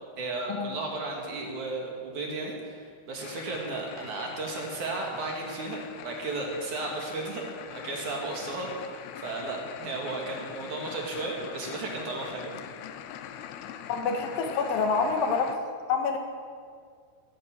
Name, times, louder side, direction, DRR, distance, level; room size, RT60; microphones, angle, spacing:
voice 1, 0.2-12.6, right 2 dB, 55° right, -1 dB, 3.3 m, -34 dB
sound 1, 3.2-15.6, left 9 dB, 85° left, 2.8 m, -43 dB
voice 2, 13.9-15.5 15.9-16.2, left 5 dB, 70° left, 4 dB, 2.9 m, -27 dB
18.5 x 9.6 x 7.6 m, 2.1 s
omnidirectional pair, 4.5 m